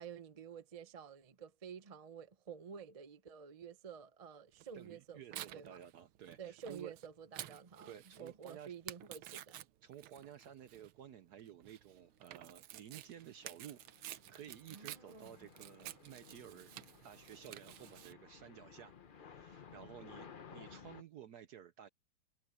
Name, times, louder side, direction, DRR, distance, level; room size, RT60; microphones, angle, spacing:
voice 1, 0.0-5.8 6.4-9.6 14.7-15.4, right 7 dB, 40° right, 0.5 m, -51 dB
Tearing, 4.6-18.1, right 13 dB, 80° right, 1.7 m, -52 dB
voice 2, 4.7-6.9 7.9-8.7 9.8-16.7 17.0-19.0 19.2-21.9, right 10 dB, 65° right, 1.0 m, -54 dB
sound 1, 13.2-21.0, left 6 dB, 90° left, 0.4 m, -57 dB
omnidirectional pair, 2.3 m